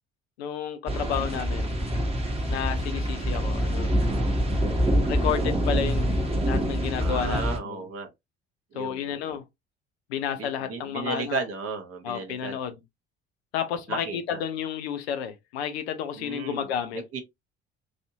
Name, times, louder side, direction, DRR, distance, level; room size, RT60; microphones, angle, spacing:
voice 1, 0.4-1.7 2.5-3.9 5.1-6.2 6.4-7.8 8.7-9.4 10.1-11.4 12.0-12.8 13.5-17.0, left 9 dB, 75° left, 0.7 m, -31 dB
sound 1, 0.9-7.6, equal, 20° right, 1.2 m, -25 dB
voice 2, 7.0-8.1 8.7-9.3 10.4-12.6 13.9-14.4 16.2-16.7 16.9-17.2, right 4 dB, 45° right, 1.2 m, -34 dB
3.2 x 2.7 x 2.7 m
figure-of-eight pair, 55°, 32 cm